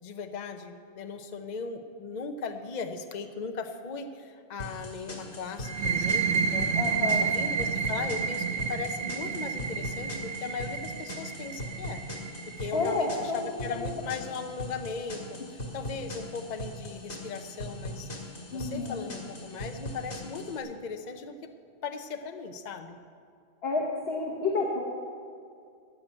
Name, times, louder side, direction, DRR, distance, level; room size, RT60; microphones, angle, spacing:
voice 1, 0.0-6.8 7.2-12.0 12.5-15.4 15.7-18.1 18.5-21.5 21.8-23.0, left 4 dB, 45° left, 7 dB, 0.8 m, -38 dB
sound 1, 4.6-20.6, left 1 dB, 85° left, 2.1 m, -40 dB
sound 2, 5.6-13.1, right 5 dB, 65° right, 0.8 m, -30 dB
voice 2, 6.7-7.3 12.7-13.9 18.5-19.1 23.6-24.8, left 3 dB, 65° left, -1 dB, 1.6 m, -30 dB
14.0 x 6.1 x 8.8 m, 2.3 s
omnidirectional pair, 1.1 m